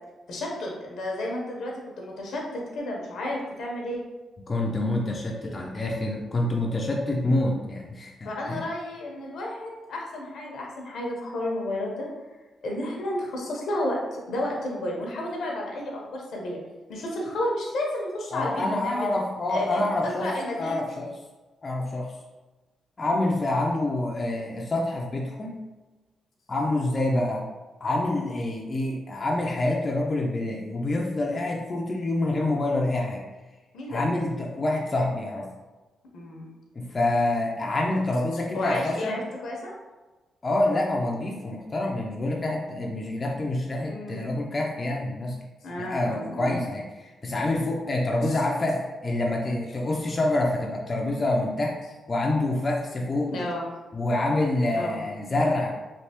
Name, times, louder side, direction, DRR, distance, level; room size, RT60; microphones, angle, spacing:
voice 1, 0.3-4.0 5.4-5.6 8.2-12.1 12.6-16.6 16.9-19.1 19.5-20.8 33.7-34.0 36.1-36.5 38.5-39.7 43.9-44.3 45.6-46.6 48.3-48.4 53.3-53.7 54.7-55.0, left 1 dB, 75° left, -1 dB, 0.8 m, -32 dB
voice 2, 4.5-8.7 18.3-21.1 21.6-22.1 23.0-25.5 26.5-27.5 27.8-33.2 33.9-35.5 36.7-39.2 40.4-45.4 45.8-51.7 52.1-53.4 53.9-55.7, left 2 dB, 40° left, -1 dB, 0.5 m, -27 dB
3.3 x 2.7 x 2.8 m, 1.2 s
supercardioid pair, 60°, 0 cm